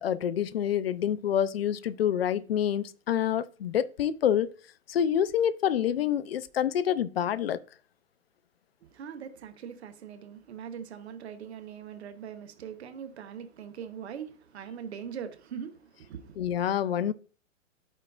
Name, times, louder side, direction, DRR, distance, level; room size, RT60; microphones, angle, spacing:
voice 1, 0.0-4.5 4.9-7.6 16.4-17.1, left 9 dB, 50° left, 0.5 m, -27 dB
voice 2, 8.9-16.4, right 8 dB, 55° right, 1.0 m, -41 dB
13.0 x 4.4 x 2.4 m
figure-of-eight pair, 120°, 40 cm